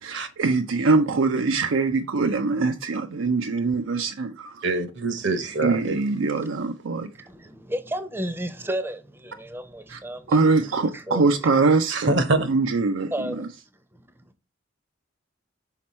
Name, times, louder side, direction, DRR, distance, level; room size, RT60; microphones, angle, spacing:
voice 1, 0.0-4.6 5.4-7.1 9.9-10.0 10.3-12.1 12.5-13.5, right 3 dB, 80° right, 0.5 m, -23 dB
voice 2, 4.6-6.0 11.9-12.5, right 2 dB, 60° right, 0.9 m, -24 dB
voice 3, 6.9-10.4 10.9-11.2 13.1-13.5, equal, 10° right, 0.6 m, -32 dB
5.8 x 4.3 x 4.2 m
head